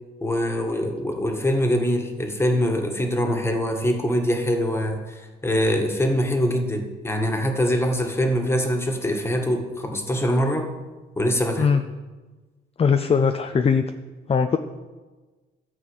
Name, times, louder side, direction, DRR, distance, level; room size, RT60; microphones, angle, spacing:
voice 1, 0.2-10.7 11.2-11.7, equal, 10° left, 3 dB, 1.7 m, -23 dB
voice 2, 12.8-13.8 14.3-14.6, left 6 dB, 30° left, 8 dB, 0.6 m, -20 dB
13.5 x 4.7 x 8.0 m, 1.3 s
cardioid pair, 90°, 20 cm